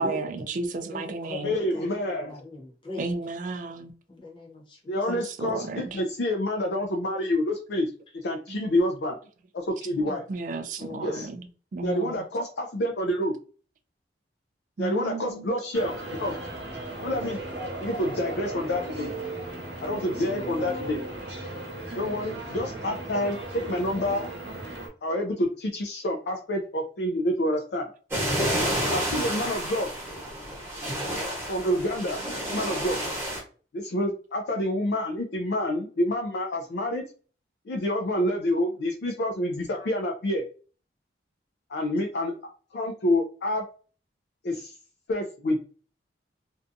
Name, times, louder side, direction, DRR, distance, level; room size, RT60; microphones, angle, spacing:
voice 1, 0.0-1.5 3.0-3.9 5.1-6.0 8.5-8.6 10.3-11.5 11.7-12.2 14.8-15.5, right 3 dB, 45° right, 0.3 m, -33 dB
voice 2, 0.9-3.1 4.1-4.9 10.0-10.2 10.8-11.3, left 2 dB, 25° left, 0.8 m, -40 dB
voice 3, 1.4-2.3 4.9-9.2 9.5-10.2 11.0-11.3 11.8-13.3 14.8-16.4 17.0-17.4 17.8-19.1 19.8-21.0 21.9-24.2 25.0-27.9 28.9-29.9 31.5-32.2 32.5-33.0 33.7-37.0 37.7-40.5 41.7-42.3 42.7-43.6 44.4-44.7 45.1-45.6, left 1 dB, 65° left, 0.4 m, -28 dB
sound 1, 15.7-24.9, right 2 dB, 70° right, 0.8 m, -36 dB
sound 2, 28.1-33.4, equal, 15° right, 1.0 m, -30 dB
2.5 x 2.3 x 2.6 m
head